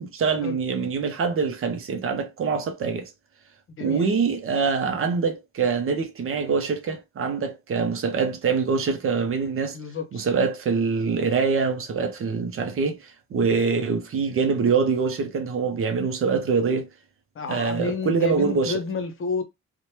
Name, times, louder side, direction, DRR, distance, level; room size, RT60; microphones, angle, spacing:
voice 1, 0.0-3.1 3.8-9.8 10.1-16.9 17.5-18.8, right 5 dB, 45° right, 0.6 m, -24 dB
voice 2, 9.7-10.2 17.3-19.4, left 4 dB, 45° left, 0.7 m, -30 dB
3.0 x 2.1 x 2.8 m
cardioid pair, 90°, 30 cm